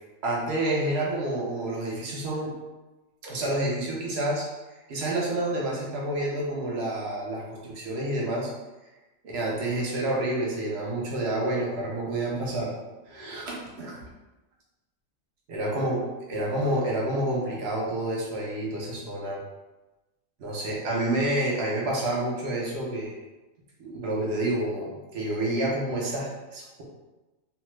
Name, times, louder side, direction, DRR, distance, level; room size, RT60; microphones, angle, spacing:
voice 1, 0.2-2.5 3.2-4.4 4.9-8.5 9.2-12.7 13.1-14.0 15.5-16.0 16.3-19.4 20.4-23.1 23.8-26.8, right 1 dB, 55° right, -3 dB, 0.9 m, -29 dB
2.8 x 2.3 x 3.0 m, 1.1 s
omnidirectional pair, 1.4 m